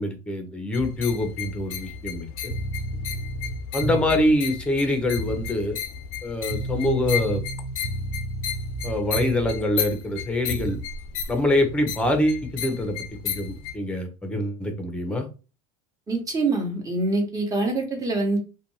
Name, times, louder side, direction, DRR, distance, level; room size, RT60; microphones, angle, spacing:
voice 1, 0.0-2.5 3.7-5.8 6.2-7.4 8.8-10.8 11.3-13.0 13.2-15.3, left 1 dB, 5° left, 0.7 m, -25 dB
sound 1, 0.7-13.8, left 8 dB, 85° left, 0.5 m, -34 dB
sound 2, 2.4-4.3 5.2-5.6 6.5-9.7 10.5-10.9, right 1 dB, 65° right, 1.2 m, -31 dB
voice 2, 16.1-18.4, right 2 dB, 20° right, 1.0 m, -25 dB
2.5 x 2.2 x 3.1 m
supercardioid pair, 115°, 17 cm